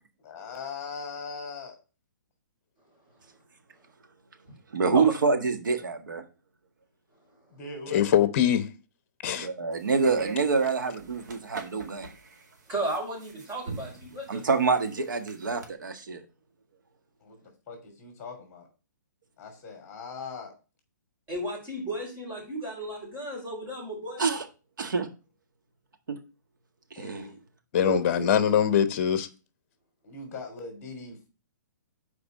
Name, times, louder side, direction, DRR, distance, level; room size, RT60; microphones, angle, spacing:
voice 1, 0.2-1.8 7.5-8.1 17.2-17.3 17.7-17.8 18.0-18.7 19.4-20.5 27.0-27.4 30.0-31.3, left 4 dB, 20° left, 3.3 m, -40 dB
voice 2, 4.7-6.2 9.3-12.1 14.3-16.2 24.2-24.4 24.8-25.1 26.9-27.3 27.8-28.3, right 4 dB, 85° right, 1.6 m, -26 dB
voice 3, 7.9-8.7 9.2-9.5 27.7-29.3, left 9 dB, 40° left, 0.9 m, -23 dB
sound 1, 9.7-15.7, right 2 dB, 65° right, 2.1 m, -44 dB
voice 4, 12.7-14.4 21.3-24.3, right 1 dB, 20° right, 4.6 m, -34 dB
6.8 x 4.8 x 5.3 m
hypercardioid pair, 150°, 10 cm